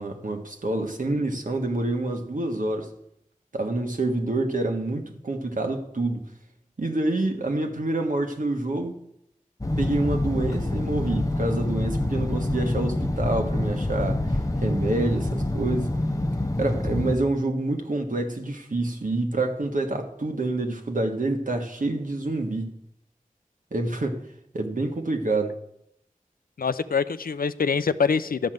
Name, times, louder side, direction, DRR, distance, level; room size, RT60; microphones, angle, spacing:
voice 1, 0.0-2.9 3.5-6.3 6.8-9.0 9.8-16.0 16.6-22.7 23.7-24.3 24.5-25.6, right 2 dB, 65° right, 1.5 m, -27 dB
sound 1, 9.6-17.2, left 1 dB, 25° left, 0.8 m, -26 dB
voice 2, 26.6-28.5, left 5 dB, 90° left, 0.5 m, -25 dB
12.5 x 5.4 x 7.7 m
wide cardioid pair, 50°, 14 cm